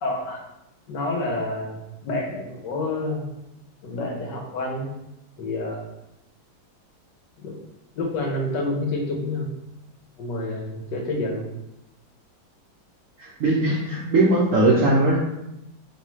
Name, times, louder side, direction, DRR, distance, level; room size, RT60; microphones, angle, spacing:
voice 1, 0.0-0.4 0.9-3.3 3.8-4.9 5.4-5.9 7.4-7.6 7.9-9.5 10.2-11.5, left 2 dB, 65° left, 0 dB, 1.3 m, -28 dB
voice 2, 13.2-15.2, right 2 dB, 70° right, -6 dB, 0.7 m, -19 dB
5.5 x 2.4 x 3.1 m, 0.88 s
omnidirectional pair, 2.2 m